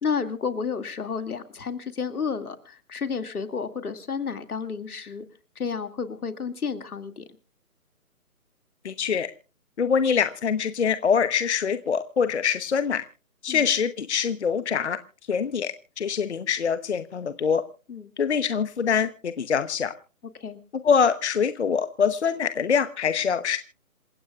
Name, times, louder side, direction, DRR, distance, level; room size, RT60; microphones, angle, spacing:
voice 1, 0.0-5.3 5.6-7.2 13.5-13.7 17.9-18.1 20.3-20.6, left 6 dB, 75° left, 8 dB, 2.3 m, -31 dB
voice 2, 8.8-9.3 9.8-13.0 13.4-15.0 15.3-17.6 18.2-19.9 20.8-23.6, left 6 dB, 50° left, 11 dB, 0.9 m, -24 dB
27.5 x 16.0 x 2.4 m, 0.37 s
hypercardioid pair, 165°, 45 cm